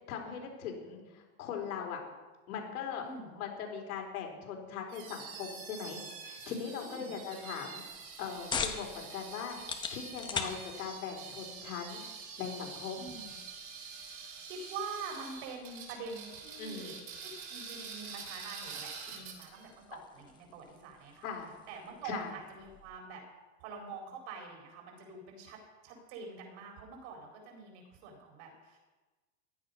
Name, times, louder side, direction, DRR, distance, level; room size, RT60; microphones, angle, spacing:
voice 1, 0.1-2.0 2.5-3.1 3.4-7.8 8.2-9.6 9.9-12.0 12.4-13.0 16.6-17.0 19.2-19.3 21.2-21.5 22.0-22.3, left 7 dB, 80° left, 1 dB, 4.1 m, -40 dB
voice 2, 3.0-3.4 6.8-7.1 10.4-10.6 13.0-13.4 14.0-17.0 17.2-21.3 21.7-23.2 23.6-25.6 25.8-28.8, right 4 dB, 50° right, 2 dB, 4.5 m, -45 dB
sound 1, 4.9-19.7, right 5 dB, 30° right, 3.0 m, -46 dB
sound 2, 7.9-23.0, left 5 dB, 10° left, 0.8 m, -45 dB
16.0 x 11.5 x 5.4 m, 1.3 s
supercardioid pair, 165°, 44 cm